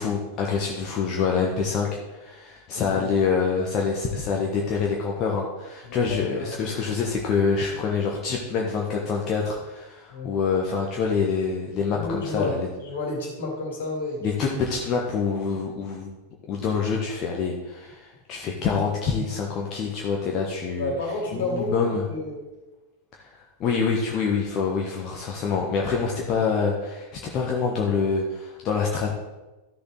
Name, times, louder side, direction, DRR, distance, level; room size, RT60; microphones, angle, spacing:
voice 1, 0.0-12.7 14.2-16.2 16.5-20.9 21.3-22.0 23.1-29.1, left 5 dB, 35° left, -1 dB, 1.3 m, -26 dB
voice 2, 2.7-3.0 5.8-6.8 10.1-10.3 11.9-14.2 20.8-22.4, left 2 dB, 60° left, 0 dB, 2.9 m, -31 dB
13.5 x 6.8 x 3.9 m, 1.1 s
figure-of-eight pair, 90°, 0 cm